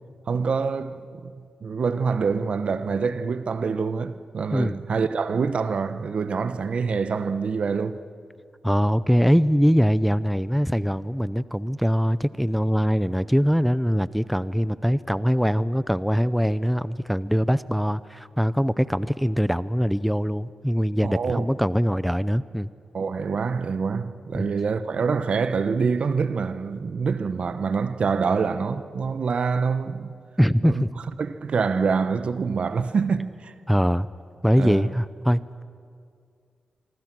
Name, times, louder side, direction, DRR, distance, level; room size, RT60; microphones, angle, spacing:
voice 1, 0.3-8.0 21.0-21.5 22.9-30.1 30.6-30.8 31.2-33.5 34.6-34.9, right 5 dB, 65° right, 1.1 m, -26 dB
voice 2, 8.6-22.7 24.3-24.5 30.4-30.9 33.7-34.1 34.4-35.6, equal, ahead, 0.6 m, -22 dB
25.0 x 25.0 x 6.2 m
cardioid pair, 50°, 2 cm